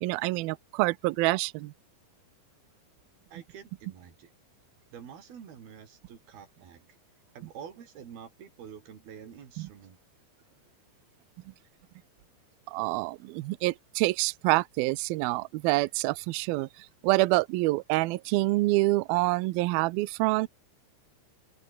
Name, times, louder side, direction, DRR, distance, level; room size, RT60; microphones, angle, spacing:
voice 1, 0.0-1.7 9.6-9.7 12.7-20.5, right 21 dB, 90° right, 2.1 m, -27 dB
voice 2, 3.3-4.3 4.9-6.9 7.3-10.0, right 8 dB, 60° right, 5.0 m, -47 dB
open air
omnidirectional pair, 5.3 m